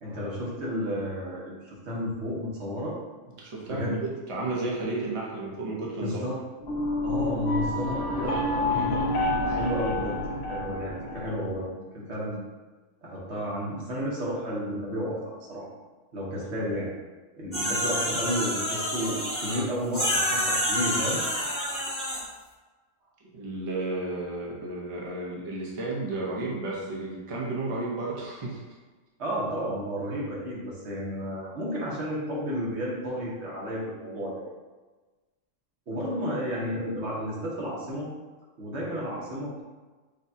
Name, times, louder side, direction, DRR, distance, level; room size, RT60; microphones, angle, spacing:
voice 1, 0.0-3.0 3.7-4.0 5.9-6.4 7.0-9.0 9.4-12.4 13.0-15.7 16.1-16.9 17.4-21.2 29.2-34.4 35.9-38.1 38.6-39.6, equal, 70° right, -5 dB, 1.3 m, -32 dB
voice 2, 3.4-6.3 17.5-17.8 23.3-28.6 34.0-34.2, right 2 dB, 30° right, -4 dB, 0.7 m, -33 dB
sound 1, 6.6-11.7, left 1 dB, 70° left, 0.9 m, -28 dB
sound 2, 17.5-19.6 19.9-22.2, equal, 10° left, 1.0 m, -28 dB
6.4 x 2.2 x 2.7 m, 1.3 s
omnidirectional pair, 1.2 m